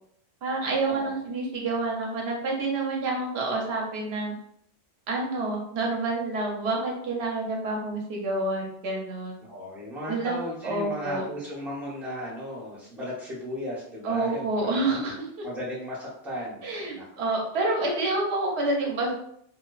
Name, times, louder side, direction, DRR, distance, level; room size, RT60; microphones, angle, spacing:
voice 1, 0.4-4.3 5.1-9.4 10.1-10.4 10.6-11.2 14.0-15.4 16.6-19.1, right 2 dB, 65° right, 0 dB, 0.9 m, -28 dB
voice 2, 9.4-14.8 15.4-17.0 17.4-17.5, equal, ahead, -7 dB, 0.7 m, -36 dB
2.6 x 2.1 x 2.3 m, 0.69 s
omnidirectional pair, 1.2 m